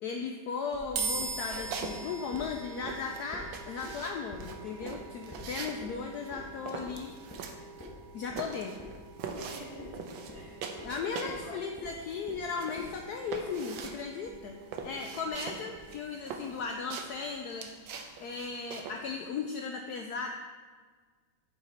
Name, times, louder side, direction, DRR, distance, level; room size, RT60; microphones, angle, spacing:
voice 1, 0.0-7.1 8.1-8.8 10.8-14.5 14.8-17.7 18.2-20.3, left 5 dB, 75° left, 3 dB, 0.9 m, -36 dB
sound 1, 0.7-16.0, equal, 10° left, 1.3 m, -48 dB
sound 2, 1.0-14.3, right 4 dB, 60° right, 0.7 m, -44 dB
sound 3, 1.1-2.0 2.2-11.5 11.8-19.0, right 5 dB, 80° right, 1.5 m, -42 dB
voice 2, 9.3-10.7 11.1-11.6, right 1 dB, 30° right, -5 dB, 1.5 m, -47 dB
7.8 x 6.0 x 4.3 m, 1.5 s
omnidirectional pair, 2.1 m